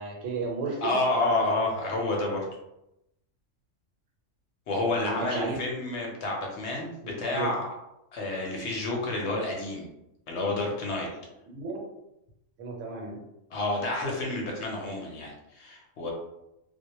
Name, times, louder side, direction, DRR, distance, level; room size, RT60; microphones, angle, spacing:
voice 1, 0.0-1.0 4.9-5.6 7.3-7.5 11.1-11.2 11.5-11.8 12.6-13.2, right 4 dB, 80° right, 0 dB, 1.0 m, -33 dB
voice 2, 0.8-2.4 4.7-7.7 8.1-9.9 10.3-11.1 13.5-16.1, left 2 dB, 65° left, -1 dB, 0.8 m, -29 dB
2.2 x 2.0 x 2.8 m, 0.87 s
omnidirectional pair, 1.3 m